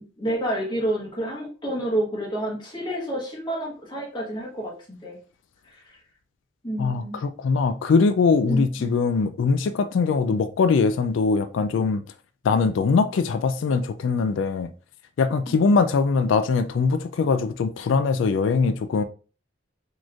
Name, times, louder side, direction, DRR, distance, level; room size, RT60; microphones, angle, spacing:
voice 1, 0.2-5.2 5.7-5.8 6.6-7.2 8.5-8.9 15.5-15.6, right 1 dB, 25° left, 1.2 m, -29 dB
voice 2, 6.8-12.0 12.4-14.7 15.2-19.0, left 4 dB, 75° left, 0.3 m, -22 dB
4.1 x 3.1 x 2.4 m
head